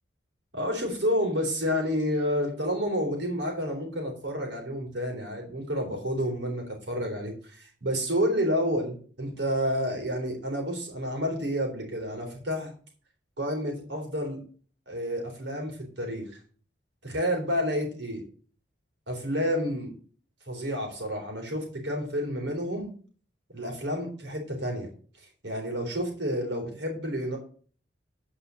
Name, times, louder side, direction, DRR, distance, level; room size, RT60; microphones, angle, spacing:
voice 1, 0.5-12.7 13.4-14.4 14.9-16.4 17.0-18.2 19.1-19.9 20.5-22.9 23.5-24.9 25.2-27.4, equal, 75° right, 2 dB, 3.8 m, -30 dB
9.6 x 5.5 x 6.4 m, 0.43 s
head